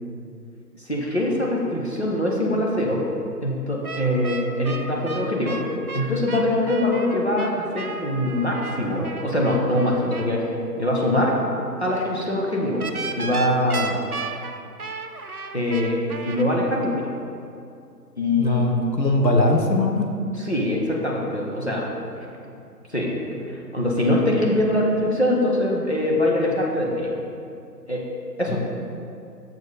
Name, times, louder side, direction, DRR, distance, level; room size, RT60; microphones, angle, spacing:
voice 1, 0.8-3.0 3.4-5.6 5.9-10.5 10.8-11.4 11.8-12.8 13.2-14.0 15.5-17.1 18.2-18.6 20.3-21.9 22.9-27.1 27.9-28.0 28.4-28.6, left 1 dB, 40° left, -3 dB, 1.0 m, -23 dB
sound 1, 3.8-10.3 12.8-16.4, right 4 dB, 60° right, 0.6 m, -34 dB
voice 2, 18.4-20.2 28.5-28.6, left 2 dB, 80° left, 2 dB, 1.3 m, -21 dB
6.6 x 6.3 x 5.1 m, 2.5 s
figure-of-eight pair, 175°, 50 cm